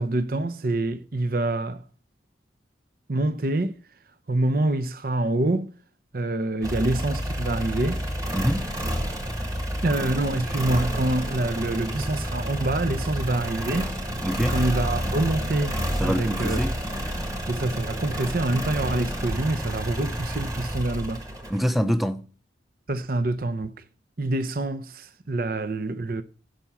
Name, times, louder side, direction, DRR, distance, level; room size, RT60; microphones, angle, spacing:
voice 1, 0.0-1.8 3.1-3.8 4.3-5.7 6.1-8.0 9.8-13.9 14.4-16.6 17.5-21.2 22.9-23.7 24.2-26.2, right 2 dB, 50° right, 0.7 m, -26 dB
sound 1, 6.6-21.7, equal, 20° right, 1.6 m, -29 dB
voice 2, 8.3-8.7 14.2-14.5 16.0-16.8 21.5-22.2, equal, ahead, 0.7 m, -25 dB
10.5 x 5.6 x 7.1 m
head